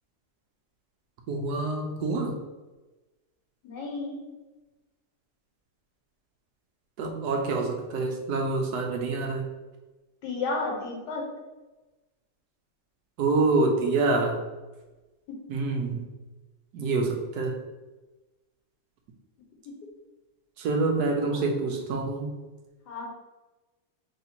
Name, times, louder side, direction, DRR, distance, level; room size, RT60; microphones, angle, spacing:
voice 1, 1.3-2.4 7.0-9.5 13.2-14.4 15.5-16.0 16.7-17.6 20.6-22.3, right 3 dB, 75° right, 2 dB, 1.3 m, -26 dB
voice 2, 3.6-4.2 10.2-11.2 15.3-15.4 21.2-21.4 22.9-23.1, left 3 dB, 85° left, 0 dB, 1.6 m, -32 dB
3.7 x 2.8 x 4.2 m, 1.1 s
omnidirectional pair, 1.7 m